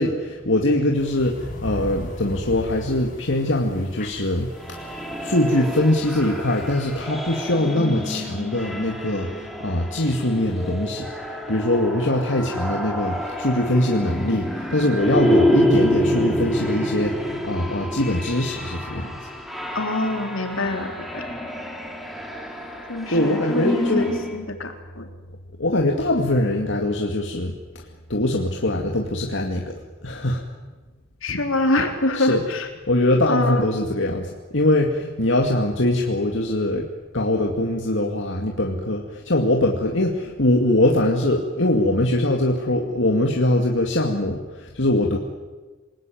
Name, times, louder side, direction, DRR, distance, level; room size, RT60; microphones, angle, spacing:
voice 1, 0.0-19.2 23.1-24.1 25.6-27.5 28.1-29.7 30.0-30.4 32.1-32.4 32.9-36.9 37.1-45.2, left 1 dB, 65° left, 0 dB, 2.3 m, -22 dB
sound 1, 1.0-7.0, left 1 dB, 40° left, 7.5 m, -38 dB
sound 2, 4.6-24.4, equal, ahead, 2.9 m, -27 dB
voice 2, 19.7-21.3 22.9-25.1 31.2-32.7 33.3-33.6, left 2 dB, 80° left, 4 dB, 3.9 m, -25 dB
28.5 x 19.5 x 9.3 m, 1.3 s
head